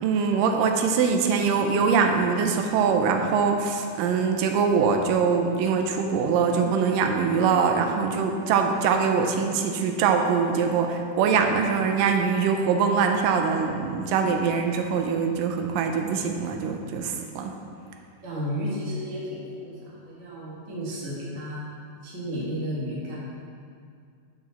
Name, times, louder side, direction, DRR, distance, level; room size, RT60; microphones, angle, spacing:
voice 1, 0.0-17.5, right 5 dB, 80° right, 4 dB, 2.1 m, -23 dB
voice 2, 18.2-21.6 22.0-23.1, equal, 55° right, -7 dB, 0.7 m, -33 dB
6.7 x 6.2 x 4.1 m, 2.3 s
omnidirectional pair, 4.1 m